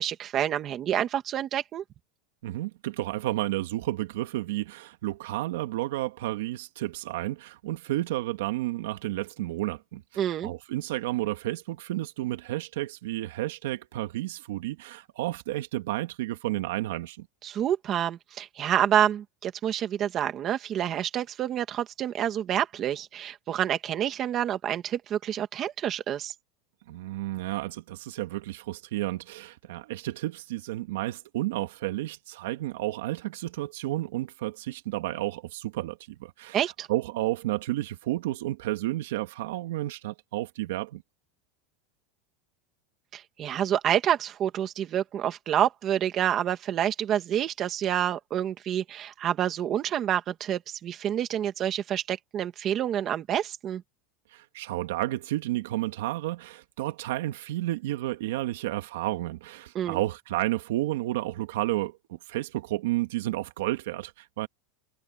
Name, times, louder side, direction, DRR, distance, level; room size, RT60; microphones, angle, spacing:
voice 1, 0.0-1.8 10.2-10.5 17.4-26.3 36.5-36.9 43.1-53.8 59.7-60.0, right 10 dB, 25° right, 2.2 m, -28 dB
voice 2, 2.4-10.0 10.4-17.3 26.9-36.6 36.9-41.0 54.3-64.5, right 16 dB, 70° right, 2.1 m, -31 dB
supercardioid pair, 175°, 0 cm